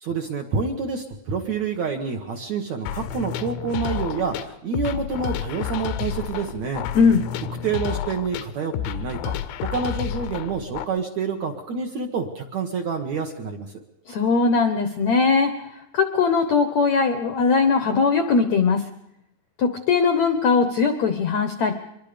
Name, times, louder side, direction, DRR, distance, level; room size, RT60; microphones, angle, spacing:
voice 1, 0.0-6.8 7.6-13.7, right 5 dB, 60° right, 3 dB, 2.0 m, -28 dB
sound 1, 2.9-10.9, left 11 dB, 85° left, 3.1 m, -30 dB
voice 2, 14.1-15.5 15.9-18.8 19.6-21.7, left 5 dB, 70° left, 8 dB, 1.7 m, -20 dB
25.0 x 22.5 x 5.2 m, 0.82 s
omnidirectional pair, 4.8 m